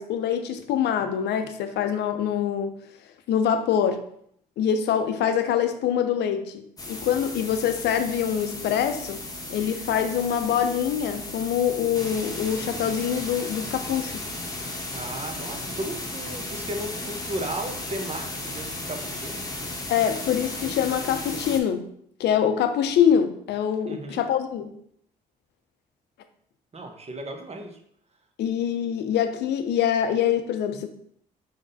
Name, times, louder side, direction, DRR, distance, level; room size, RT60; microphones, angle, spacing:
voice 1, 0.0-2.7 3.3-4.0 4.6-9.2 9.5-14.1 19.9-21.9 22.2-24.7 28.4-30.9, left 8 dB, 65° left, 9 dB, 0.6 m, -24 dB
sound 1, 6.8-21.6, left 2 dB, 20° left, 1.1 m, -35 dB
voice 2, 14.9-19.4 23.9-24.2 26.7-27.8, right 1 dB, 35° right, 4 dB, 1.0 m, -35 dB
5.3 x 3.7 x 2.7 m, 0.68 s
hypercardioid pair, 45°, 19 cm